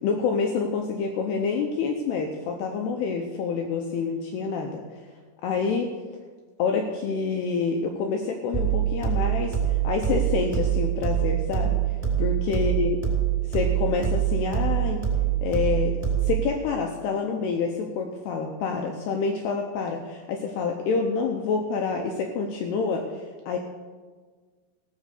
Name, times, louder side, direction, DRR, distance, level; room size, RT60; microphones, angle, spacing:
voice 1, 0.0-4.8 5.4-5.9 6.6-11.8 12.2-13.0 13.5-15.0 15.4-16.0 16.2-23.6, left 5 dB, 90° left, 2 dB, 2.3 m, -27 dB
sound 1, 8.5-16.5, right 10 dB, 5° right, 3.0 m, -25 dB
16.5 x 7.3 x 6.7 m, 1.5 s
omnidirectional pair, 5.9 m